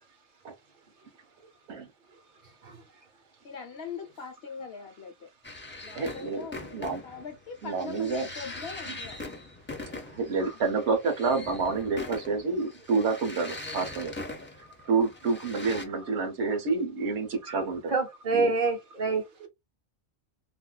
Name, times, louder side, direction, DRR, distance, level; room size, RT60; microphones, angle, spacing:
voice 1, 3.4-5.3 5.8-9.2 15.8-16.1 18.6-18.7, left 5 dB, 65° left, 1.0 m, -42 dB
sound 1, 5.4-15.8, left 2 dB, 20° left, 0.3 m, -42 dB
voice 2, 5.9-6.5 6.7-7.0 7.6-8.3 10.2-14.1 14.6-17.9 18.3-18.5, right 4 dB, 80° right, 1.1 m, -28 dB
voice 3, 17.9-19.5, right 3 dB, 50° right, 1.1 m, -28 dB
3.4 x 2.6 x 2.2 m
omnidirectional pair, 1.2 m